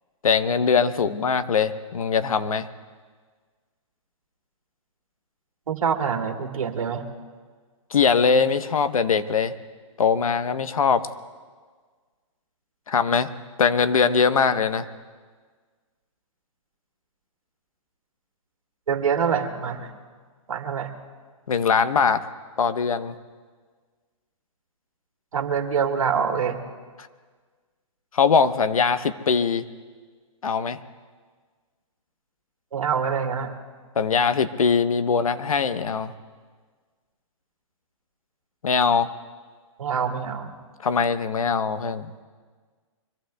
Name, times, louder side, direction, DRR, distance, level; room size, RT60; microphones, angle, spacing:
voice 1, 0.2-2.7 7.9-9.5 10.0-11.1 12.9-13.3 13.6-14.9 21.5-22.2 22.6-23.2 28.1-29.7 30.4-30.8 34.0-36.1 38.6-39.1 40.8-42.1, left 6 dB, 85° left, 11 dB, 1.0 m, -21 dB
voice 2, 5.7-7.0 18.9-19.9 20.5-20.9 25.3-26.6 32.7-33.5 39.8-40.5, right 6 dB, 80° right, 4 dB, 2.1 m, -25 dB
25.0 x 22.5 x 2.3 m, 1.5 s
hypercardioid pair, 155°, 17 cm